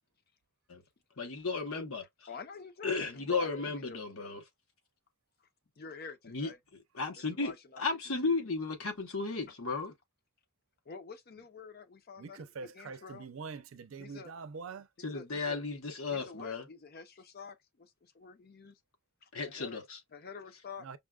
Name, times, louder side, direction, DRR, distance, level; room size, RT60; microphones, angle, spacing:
voice 1, 1.2-2.0 2.8-4.4 6.3-6.5 6.9-9.9 15.0-16.7 19.3-20.0, left 4 dB, 85° left, 1.0 m, -34 dB
voice 2, 2.3-4.4 5.8-6.6 7.3-7.8 8.2-8.5 10.9-13.3 14.0-14.3 15.0-15.6 16.1-18.8 19.2-19.8 20.1-21.0, left 5 dB, 45° left, 0.6 m, -48 dB
voice 3, 12.2-14.9 20.8-21.0, right 5 dB, 70° right, 0.5 m, -44 dB
5.3 x 2.2 x 2.3 m
head